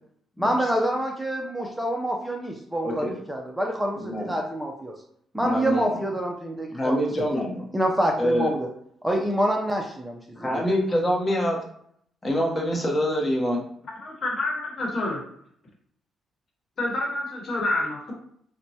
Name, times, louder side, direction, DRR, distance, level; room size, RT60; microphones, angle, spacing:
voice 1, 0.4-4.9 5.3-7.3 7.7-8.7 9.0-10.7, right 1 dB, 5° right, 1 dB, 0.4 m, -27 dB
voice 2, 2.8-3.2 3.9-4.3 5.4-5.9 6.7-7.7 8.2-8.5 10.4-11.6 12.2-13.6, equal, 20° left, -1 dB, 0.9 m, -25 dB
voice 3, 14.0-15.2 16.8-18.1, left 2 dB, 50° left, -1 dB, 1.1 m, -28 dB
4.2 x 2.1 x 2.7 m, 0.67 s
cardioid pair, 90°, 0 cm